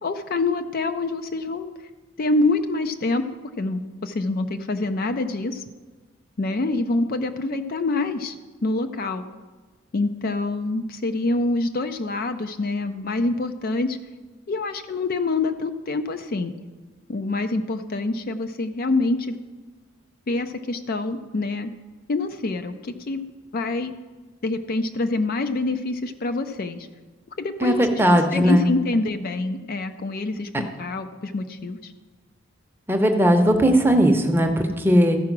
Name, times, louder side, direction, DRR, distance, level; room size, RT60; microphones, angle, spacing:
voice 1, 0.0-1.7 2.2-3.2 3.6-5.6 6.4-8.4 8.6-9.2 9.9-14.0 14.5-16.5 17.1-19.4 20.3-21.7 22.1-23.2 23.5-23.9 24.4-26.9 27.4-31.9, left 2 dB, 45° left, 8 dB, 0.4 m, -26 dB
voice 2, 27.6-28.7 32.9-35.2, equal, 10° right, 4 dB, 0.7 m, -18 dB
14.0 x 4.8 x 6.0 m, 1.4 s
head